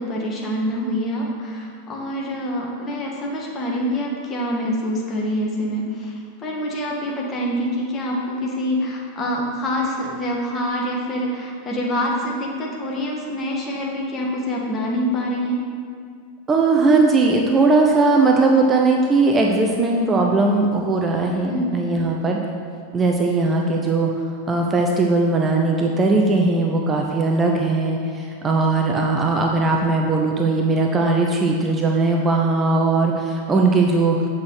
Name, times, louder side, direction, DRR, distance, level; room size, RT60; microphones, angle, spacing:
voice 1, 0.0-6.1 6.4-15.6 21.4-21.7, equal, 25° left, -2 dB, 1.6 m, -25 dB
voice 2, 16.5-22.4 22.9-24.1 24.5-34.2, right 3 dB, 20° right, 1 dB, 0.7 m, -19 dB
8.3 x 6.0 x 4.8 m, 2.2 s
figure-of-eight pair, 90°, 0 cm